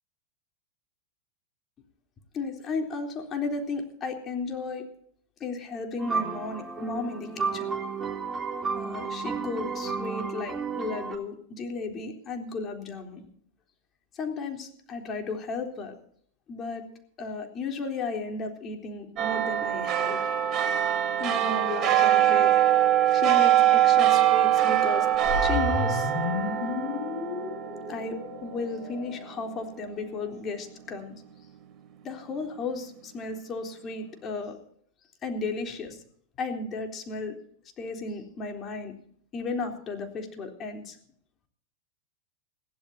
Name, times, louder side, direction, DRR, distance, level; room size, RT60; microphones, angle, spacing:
voice 1, 2.3-4.9 5.4-7.8 8.7-13.3 14.1-16.0 16.5-16.8 17.2-20.2 21.2-22.5 23.1-25.1 25.4-26.1 27.9-31.2 32.0-34.6 35.2-36.0 36.4-37.4 37.8-38.9 39.3-41.0, left 4 dB, 30° left, 3 dB, 3.7 m, -34 dB
sound 1, 6.0-11.2, right 5 dB, 15° right, 3.2 m, -32 dB
sound 2, 19.2-29.9 30.4-30.5, right 12 dB, 35° right, 2.8 m, -23 dB
sound 3, 25.1-29.5, left 6 dB, 50° left, 2.5 m, -32 dB
21.5 x 16.0 x 2.8 m, 0.62 s
hypercardioid pair, 100°, 0 cm